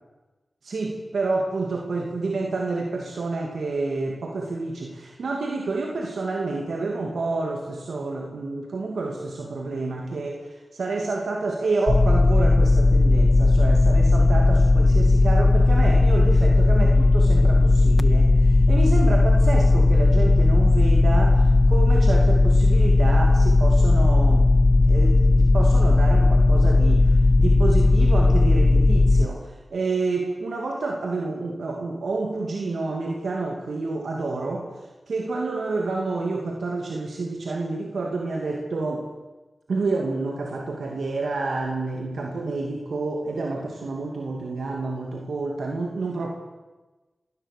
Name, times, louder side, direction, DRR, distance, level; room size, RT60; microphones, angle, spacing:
voice 1, 0.6-24.6 24.8-34.7 35.1-39.1 39.7-46.3, right 3 dB, 90° right, 0 dB, 2.6 m, -29 dB
sound 1, 11.9-29.3, left 2 dB, 45° left, 0.7 m, -17 dB
26.0 x 18.5 x 6.8 m, 1.1 s
cardioid pair, 45°, 0 cm